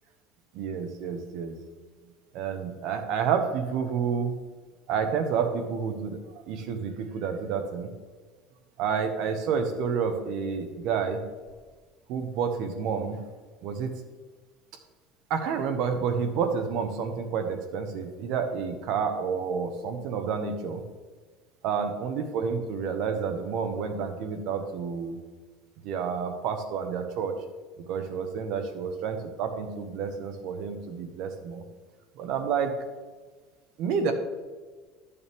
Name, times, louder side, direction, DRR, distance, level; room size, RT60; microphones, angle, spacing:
voice 1, 0.5-1.6 2.3-4.4 4.9-7.9 8.8-11.2 12.1-13.2 13.6-13.9 15.3-20.8 21.6-25.2 25.8-27.3 27.9-31.6 32.2-32.7 33.8-34.1, right 6 dB, 60° right, 7 dB, 1.0 m, -29 dB
12.5 x 6.9 x 3.6 m, 1.4 s
cardioid pair, 150°, 0 cm